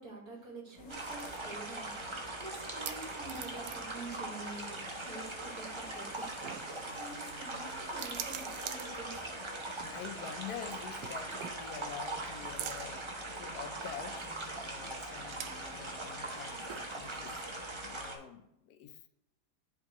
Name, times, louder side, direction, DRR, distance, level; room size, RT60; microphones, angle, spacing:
voice 1, 0.0-9.4, right 2 dB, 65° right, -1 dB, 2.1 m, -47 dB
sound 1, 0.7-17.7, right 10 dB, 80° right, 1.1 m, -49 dB
sound 2, 0.8-18.1, left 3 dB, 55° left, 1.0 m, -51 dB
sound 3, 0.9-18.2, right 2 dB, 30° right, 0.5 m, -41 dB
voice 2, 9.8-14.2 14.6-17.4 17.8-19.1, left 9 dB, 75° left, 8 dB, 1.1 m, -47 dB
10.5 x 3.7 x 2.9 m, 0.82 s
omnidirectional pair, 1.7 m